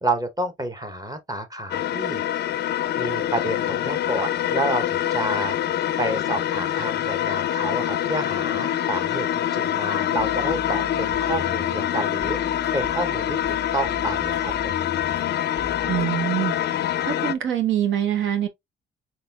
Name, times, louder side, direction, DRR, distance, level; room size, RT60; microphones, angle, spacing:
voice 1, 0.0-2.2 3.0-5.6 6.0-12.4 12.7-14.7, right 2 dB, 20° right, 0.9 m, -29 dB
sound 1, 1.7-17.3, left 11 dB, 55° left, 0.4 m, -25 dB
sound 2, 10.2-16.1, left 2 dB, 55° right, 1.8 m, -40 dB
voice 2, 15.9-16.6 17.0-18.5, right 10 dB, 75° right, 1.0 m, -24 dB
4.1 x 3.4 x 2.3 m
cardioid pair, 90°, 20 cm